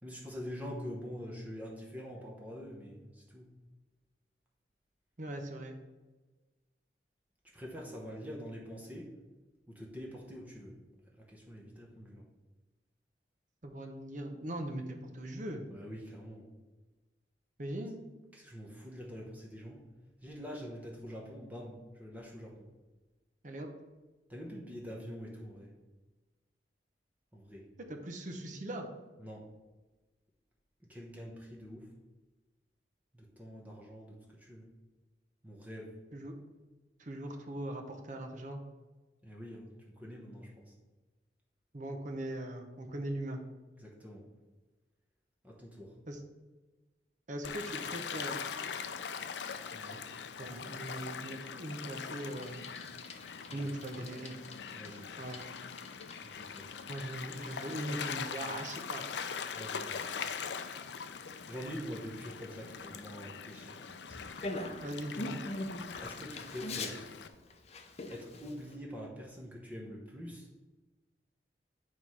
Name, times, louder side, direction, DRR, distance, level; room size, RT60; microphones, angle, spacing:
voice 1, 0.0-3.5 7.5-9.2 9.7-10.8 11.2-12.3 15.7-16.4 18.3-19.9 20.2-22.7 24.3-25.7 27.3-27.7 29.2-29.5 30.8-31.9 33.1-34.7 35.4-35.9 39.2-40.7 43.8-44.3 45.4-46.0 49.7-50.1 53.5-53.7 54.0-54.1 54.7-55.1 56.2-56.7 59.6-60.1 61.5-63.8 64.1-64.4 66.0-67.1 68.1-70.5, equal, 10° right, -2 dB, 0.9 m, -45 dB
voice 2, 5.2-5.7 13.6-15.6 17.6-18.0 23.4-23.7 27.9-28.9 36.1-36.4 37.0-38.6 41.7-43.4 46.1-46.2 47.3-48.5 50.4-52.6 53.5-54.4 55.2-55.4 56.9-59.1 64.8-65.4, right 1 dB, 45° right, 4 dB, 0.8 m, -40 dB
Gull seagull / Waves surf, 47.4-67.3, left 6 dB, 75° left, 0.5 m, -42 dB
Bicycle, 52.3-68.8, left 2 dB, 35° left, 0.6 m, -46 dB
9.4 x 3.1 x 5.5 m, 1.2 s
head